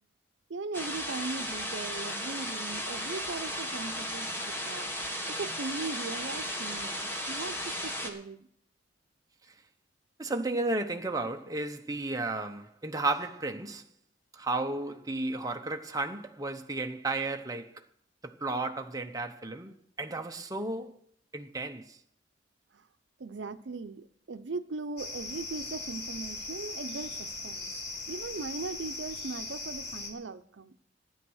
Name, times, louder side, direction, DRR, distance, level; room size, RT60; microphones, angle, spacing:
voice 1, 0.5-4.9 5.3-8.5 22.7-22.9 23.2-27.7 28.1-30.7, right 3 dB, 90° right, 0.6 m, -39 dB
sound 1, 0.7-8.1, equal, 15° left, 1.7 m, -35 dB
voice 2, 10.2-13.8 14.3-17.8 18.2-20.9 21.3-22.0, right 2 dB, 20° right, 0.8 m, -33 dB
sound 2, 25.0-30.1, left 3 dB, 60° left, 3.2 m, -39 dB
12.5 x 9.7 x 6.3 m
head